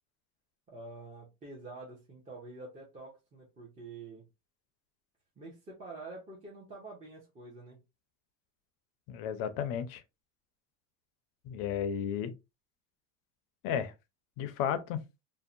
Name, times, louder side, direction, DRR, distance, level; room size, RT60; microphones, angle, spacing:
voice 1, 0.7-4.3 5.4-7.8, right 3 dB, 15° right, 0.6 m, -47 dB
voice 2, 9.1-10.0 11.5-12.3 13.6-13.9 14.4-15.0, left 8 dB, 50° left, 0.5 m, -33 dB
2.7 x 2.1 x 2.4 m
supercardioid pair, 135°, 43 cm